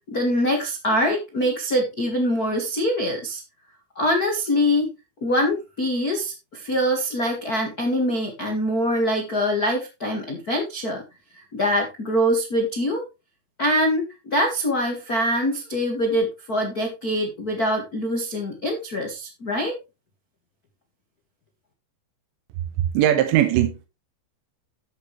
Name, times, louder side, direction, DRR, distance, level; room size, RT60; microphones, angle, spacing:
voice 1, 0.1-3.4 3.9-4.9 5.2-11.0 11.3-13.0 13.6-19.8, equal, 80° left, 0.8 m, -24 dB
voice 2, 22.8-23.9, right 12 dB, 80° right, 3.2 m, -20 dB
13.0 x 8.1 x 3.3 m
omnidirectional pair, 5.3 m